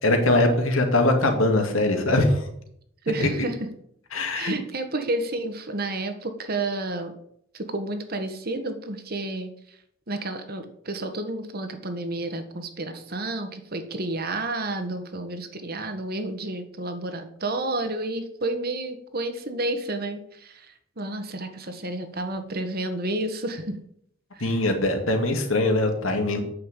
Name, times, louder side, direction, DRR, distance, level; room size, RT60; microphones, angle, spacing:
voice 1, 0.0-2.5 3.2-3.3 4.1-4.5 24.4-26.4, left 2 dB, 80° left, 4 dB, 2.3 m, -22 dB
voice 2, 3.0-3.6 4.3-7.1 7.5-9.8 10.1-23.7 24.3-24.6, right 2 dB, 50° right, 7 dB, 1.4 m, -30 dB
8.8 x 6.7 x 8.2 m, 0.71 s
head